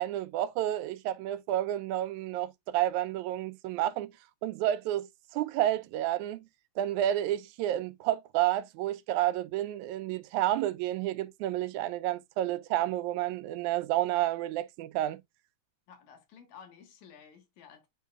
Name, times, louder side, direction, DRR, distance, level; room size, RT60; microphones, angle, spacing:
voice 1, 0.0-4.1 4.4-6.4 6.8-15.2, right 13 dB, 90° right, 2.0 m, -30 dB
voice 2, 15.9-17.9, left 7 dB, 80° left, 2.8 m, -53 dB
9.1 x 4.5 x 2.3 m
omnidirectional pair, 3.3 m